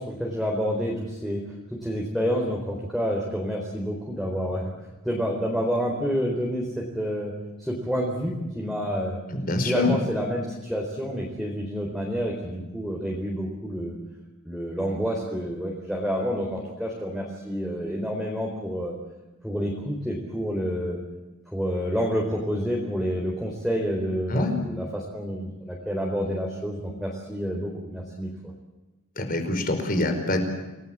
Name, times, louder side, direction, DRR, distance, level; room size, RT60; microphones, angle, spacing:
voice 1, 0.0-1.4 1.7-4.7 5.0-9.2 9.6-14.0 14.4-18.9 19.4-21.0 21.5-28.3, equal, ahead, -2 dB, 4.1 m, -28 dB
voice 2, 9.3-9.9 24.3-24.5 29.2-30.4, left 2 dB, 40° left, 6 dB, 4.9 m, -25 dB
29.0 x 19.0 x 7.6 m, 1.1 s
head